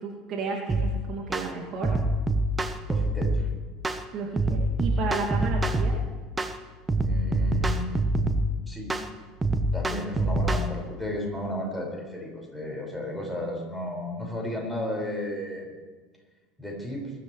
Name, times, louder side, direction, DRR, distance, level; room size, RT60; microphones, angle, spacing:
voice 1, 0.0-1.9 4.1-6.0, right 4 dB, 45° right, -2 dB, 2.4 m, -33 dB
sound 1, 0.7-0.9 1.3-1.5 1.8-3.4 3.8-4.0 4.4-6.0 6.4-6.6 6.9-8.5 8.9-9.1 9.4-10.7, right 2 dB, 15° right, 1.1 m, -25 dB
voice 2, 2.9-3.5 7.0-8.9 9.7-15.6 16.6-17.0, left 1 dB, ahead, -3 dB, 5.6 m, -34 dB
22.0 x 13.0 x 3.3 m, 1.4 s
figure-of-eight pair, 70°, 0 cm